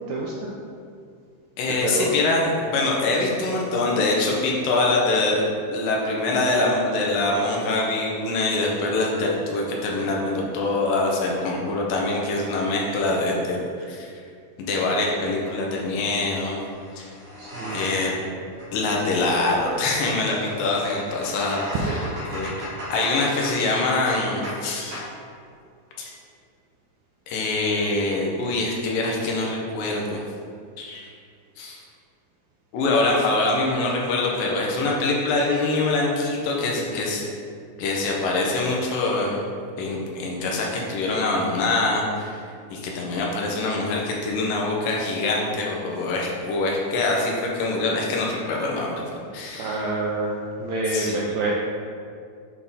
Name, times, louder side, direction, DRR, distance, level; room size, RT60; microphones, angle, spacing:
voice 1, 0.1-0.5 1.8-2.1 17.4-17.8 21.7-22.0 49.6-51.5, right 2 dB, 85° right, -3 dB, 1.7 m, -27 dB
voice 2, 1.6-5.4 5.7-14.1 14.6-16.6 16.9-17.1 17.7-18.1 18.7-22.0 22.3-25.0 26.0-26.1 27.3-30.2 30.8-31.1 31.6-31.8 32.7-37.3 37.8-39.4 39.8-42.4 42.7-49.0 49.3-50.0 50.9-51.2, left 2 dB, 80° left, -2 dB, 2.6 m, -24 dB
sound 1, 15.4-15.6 16.7-18.2 18.5-24.6 24.9-25.1, equal, 50° right, 2.1 m, -37 dB
8.2 x 3.6 x 4.1 m, 2.3 s
omnidirectional pair, 3.9 m